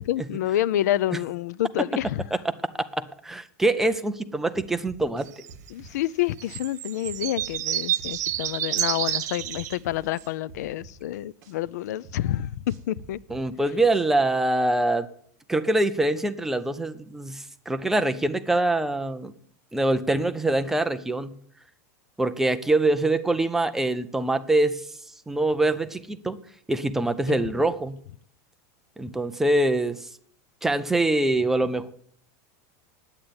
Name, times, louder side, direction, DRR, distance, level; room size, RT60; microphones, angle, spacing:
voice 1, 0.0-2.2 5.7-13.2 27.3-27.4, left 13 dB, 80° left, 0.4 m, -28 dB
voice 2, 2.9-5.3 13.3-15.1 15.5-19.3 19.7-21.4 22.2-24.9 25.3-26.4 26.7-28.0 29.0-30.1 30.6-31.9, right 2 dB, 5° right, 0.4 m, -24 dB
sound 1, 4.5-6.6 7.0-9.1 9.4-11.6 12.0-14.3, right 4 dB, 35° right, 2.2 m, -47 dB
sound 2, 5.3-5.7 6.4-9.8 10.2-10.3, right 12 dB, 90° right, 1.0 m, -29 dB
8.8 x 8.6 x 9.6 m
supercardioid pair, 175°, 9 cm